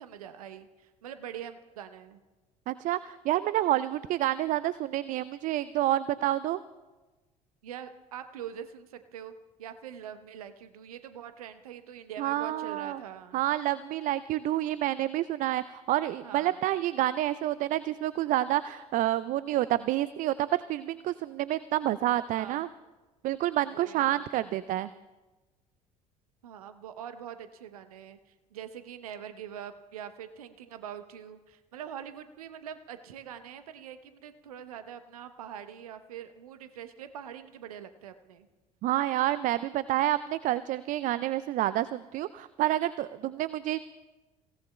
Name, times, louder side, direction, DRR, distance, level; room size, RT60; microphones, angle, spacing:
voice 1, 0.0-2.2 7.6-9.3 9.6-13.4 16.2-16.6 22.3-22.6 23.7-24.2 26.4-28.2 28.5-38.5 43.2-43.4, right 9 dB, 75° right, 11 dB, 0.9 m, -43 dB
voice 2, 2.7-6.6 12.2-13.0 13.3-22.7 23.2-24.9 38.8-43.8, right 14 dB, 45° right, 16 dB, 0.4 m, -28 dB
30.0 x 17.0 x 2.2 m, 1.2 s
figure-of-eight pair, 60°, 19 cm